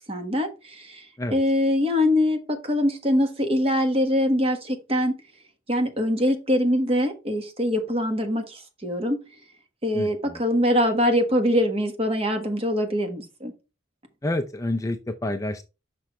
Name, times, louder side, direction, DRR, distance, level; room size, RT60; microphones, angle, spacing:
voice 1, 0.1-1.0 1.3-5.2 5.7-9.2 9.8-13.5, left 1 dB, 30° right, 1.4 m, -23 dB
voice 2, 9.9-10.4 14.2-15.6, left 1 dB, 15° left, 0.5 m, -28 dB
6.1 x 5.9 x 3.2 m
head